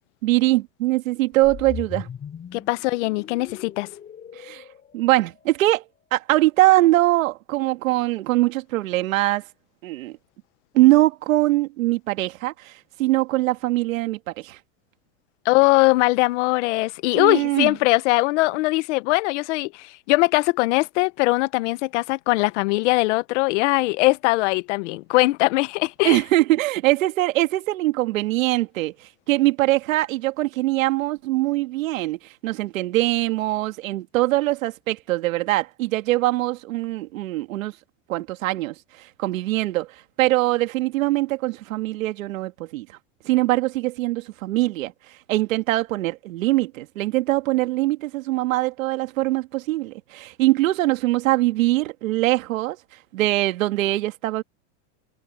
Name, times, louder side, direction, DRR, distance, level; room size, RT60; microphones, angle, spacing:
voice 1, 0.2-2.1 4.3-4.6 4.9-5.8 6.1-9.4 9.8-10.2 10.7-14.6 17.1-17.8 26.0-37.7 38.1-42.9 43.2-52.8 53.1-54.4, right 17 dB, 85° right, 2.1 m, -22 dB
sound 1, 1.3-5.6, left 8 dB, 20° left, 6.3 m, -39 dB
voice 2, 2.5-3.9 15.4-26.2, left 22 dB, 65° left, 1.1 m, -21 dB
supercardioid pair, 150°, 39 cm